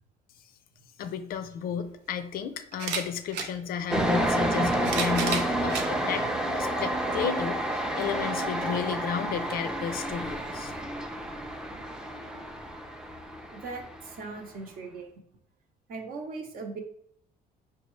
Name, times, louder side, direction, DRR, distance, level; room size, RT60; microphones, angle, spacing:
voice 1, 1.0-6.3 6.5-10.7, left 7 dB, 60° left, 9 dB, 0.4 m, -33 dB
sound 1, 1.3-1.4 2.7-3.5 4.5-5.9 6.6-6.7 8.0-8.1, right 6 dB, 90° right, 0.6 m, -32 dB
sound 2, 3.9-14.3, right 1 dB, 5° right, 0.4 m, -30 dB
voice 2, 13.5-15.1 15.9-16.8, right 4 dB, 60° right, 3 dB, 0.8 m, -39 dB
5.1 x 2.2 x 3.1 m, 0.70 s
cardioid pair, 110°, 17 cm